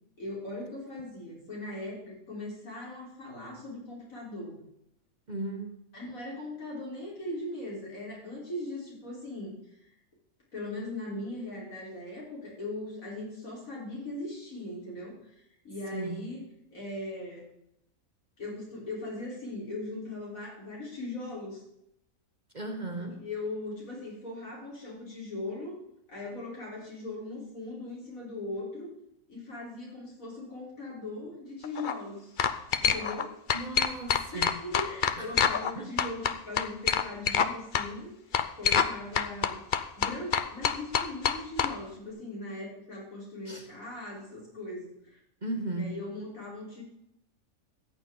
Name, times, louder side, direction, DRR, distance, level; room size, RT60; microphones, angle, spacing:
voice 1, 0.2-4.6 5.9-9.6 10.5-16.4 16.7-17.5 18.4-21.6 23.2-25.8 26.1-28.9 29.3-32.4 32.8-33.3 34.3-38.1 38.5-39.6 40.0-45.2 45.8-46.8, left 2 dB, 70° left, -4 dB, 4.7 m, -39 dB
voice 2, 5.3-5.7 15.9-16.2 22.5-23.2 33.5-34.5 35.2-35.3 35.8-35.9 43.5-43.7 45.4-46.0, right 2 dB, 35° right, 5 dB, 1.0 m, -36 dB
sound 1, 31.6-31.9 32.4-33.2 33.5-35.7 36.0-37.5 37.7-37.9 38.3-38.9 39.1-41.7, left 7 dB, 50° left, 0.6 m, -26 dB
14.0 x 9.0 x 3.9 m, 0.78 s
omnidirectional pair, 1.5 m